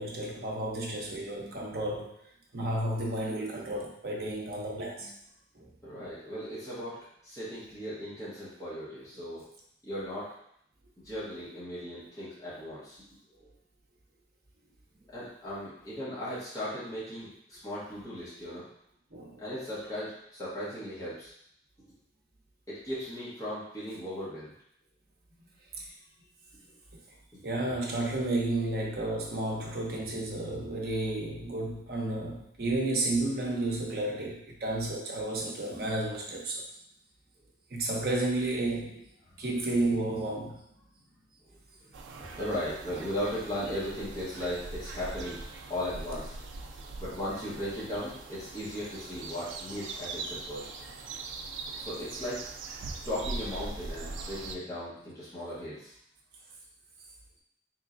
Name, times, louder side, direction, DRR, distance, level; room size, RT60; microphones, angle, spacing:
voice 1, 0.0-2.2 2.5-5.1 5.6-5.7 19.1-19.4 25.8-25.9 27.4-36.6 37.7-39.0 39.4-40.6, right 2 dB, 55° right, -2 dB, 0.7 m, -32 dB
voice 2, 5.8-9.5 9.8-10.4 11.0-13.0 13.4-13.5 15.1-18.7 19.4-21.3 22.7-24.5 26.6-26.7 27.3-27.4 41.5-41.6 42.3-45.4 45.7-46.4 47.0-50.7 51.7-52.4 53.0-55.9, equal, 20° left, -11 dB, 1.1 m, -37 dB
sound 1, 41.9-54.6, right 3 dB, 85° right, 0.4 m, -41 dB
3.6 x 3.1 x 2.5 m, 0.71 s
head